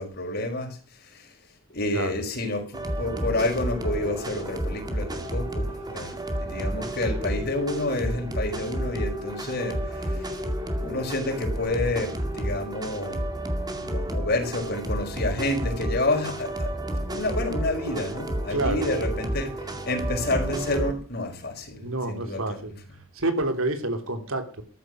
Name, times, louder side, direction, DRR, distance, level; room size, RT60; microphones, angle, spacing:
voice 1, 0.0-1.3 1.7-10.4 10.8-13.4 13.7-19.5 19.8-22.6, left 2 dB, 50° left, 5.2 m, -29 dB
sound 1, 2.7-20.9, equal, 20° right, 2.2 m, -31 dB
voice 2, 18.5-18.9 21.8-22.7 23.1-24.6, right 2 dB, 85° right, 3.0 m, -28 dB
14.0 x 12.0 x 6.5 m
head